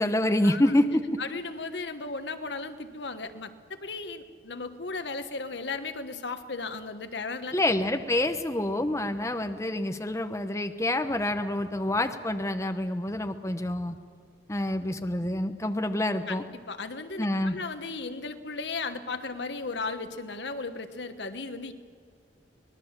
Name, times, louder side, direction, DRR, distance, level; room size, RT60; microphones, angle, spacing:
voice 1, 0.0-1.0 7.5-14.0 14.5-16.4 17.2-17.6, left 1 dB, 15° left, 6 dB, 0.9 m, -27 dB
voice 2, 1.2-7.6 16.3-21.7, left 3 dB, 75° left, 9 dB, 1.3 m, -36 dB
24.5 x 20.0 x 7.4 m, 2.1 s
head